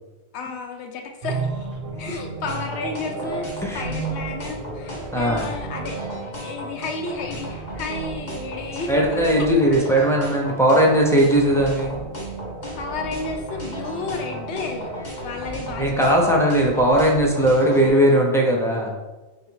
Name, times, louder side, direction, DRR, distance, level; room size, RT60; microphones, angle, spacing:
voice 1, 0.3-6.0 6.4-8.9 9.4-9.5 12.8-14.9 15.2-16.3, left 4 dB, 85° left, 3 dB, 0.9 m, -32 dB
sound 1, 1.2-16.1, right 5 dB, 60° right, 0.6 m, -35 dB
sound 2, 2.5-17.9, equal, 60° left, 1.3 m, -36 dB
voice 2, 5.1-5.5 8.9-12.0 15.8-19.0, right 1 dB, 5° left, -2 dB, 0.4 m, -18 dB
3.5 x 2.6 x 4.5 m, 1.1 s
omnidirectional pair, 1.1 m